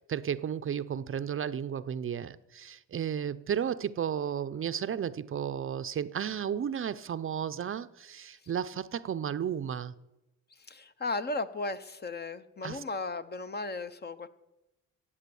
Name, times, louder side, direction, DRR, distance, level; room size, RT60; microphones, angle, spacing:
voice 1, 0.1-9.9 12.6-12.8, right 8 dB, 40° right, 0.6 m, -33 dB
voice 2, 10.7-14.3, left 3 dB, 30° left, 0.8 m, -35 dB
16.0 x 8.5 x 7.0 m
cardioid pair, 90°, 32 cm